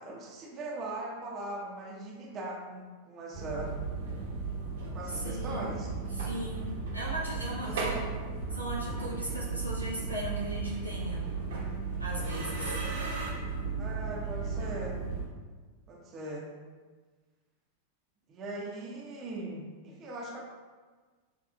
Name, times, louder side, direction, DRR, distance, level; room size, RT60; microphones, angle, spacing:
voice 1, 0.0-3.7 4.9-5.9 7.6-8.0 13.8-15.0 15.9-16.5 18.3-20.4, right 2 dB, 30° right, -3 dB, 0.9 m, -40 dB
sound 1, 3.3-15.3, right 4 dB, 60° right, 1.2 m, -35 dB
voice 2, 5.2-5.7 6.1-8.0 8.5-11.3 12.0-12.8, right 1 dB, 90° right, -6 dB, 1.1 m, -38 dB
6.3 x 3.4 x 2.5 m, 1.4 s
figure-of-eight pair, 90°, 0 cm